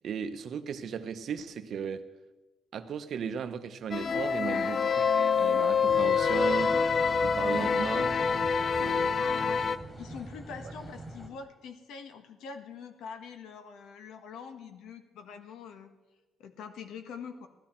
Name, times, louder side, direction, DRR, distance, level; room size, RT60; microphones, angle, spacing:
voice 1, 0.0-2.0 2.7-5.1 5.4-6.8 7.2-8.1 8.8-9.1, right 7 dB, 50° right, 9 dB, 0.8 m, -36 dB
sound 1, 3.9-9.8, left 6 dB, 35° left, 0.3 m, -26 dB
sound 2, 5.9-11.3, right 1 dB, 10° left, 2.2 m, -44 dB
voice 2, 9.1-15.9 16.4-17.5, left 6 dB, 85° left, 7 dB, 1.3 m, -44 dB
16.5 x 12.5 x 4.4 m, 1.2 s
cardioid pair, 165°, 0 cm